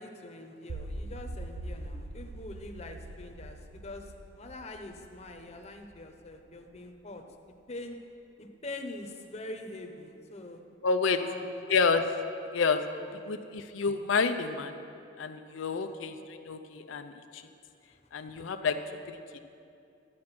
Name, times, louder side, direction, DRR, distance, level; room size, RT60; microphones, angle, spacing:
voice 1, 0.0-7.2 7.7-8.0 8.4-10.6 11.2-11.6 13.1-13.5 15.7-16.0, left 2 dB, 35° left, 4 dB, 0.9 m, -44 dB
sound 1, 0.7-6.8, right 1 dB, 75° right, 0.7 m, -43 dB
voice 2, 10.8-11.2 11.7-12.0 12.5-12.8 13.2-14.7 15.2-17.4 18.1-18.8, left 5 dB, 90° left, 7 dB, 0.5 m, -29 dB
12.0 x 8.6 x 5.9 m, 2.6 s
head